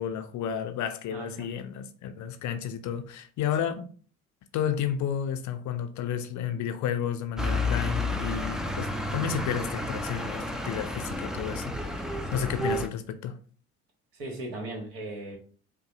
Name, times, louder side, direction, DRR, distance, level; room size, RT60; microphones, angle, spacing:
voice 1, 0.0-3.9 4.5-13.4, left 8 dB, 40° left, 0.6 m, -32 dB
voice 2, 1.1-1.5 7.6-7.7 12.3-12.5 14.2-15.4, right 2 dB, 60° right, 1.9 m, -38 dB
sound 1, 7.4-12.9, left 1 dB, ahead, 0.4 m, -31 dB
5.2 x 2.3 x 4.0 m
figure-of-eight pair, 55°, 44 cm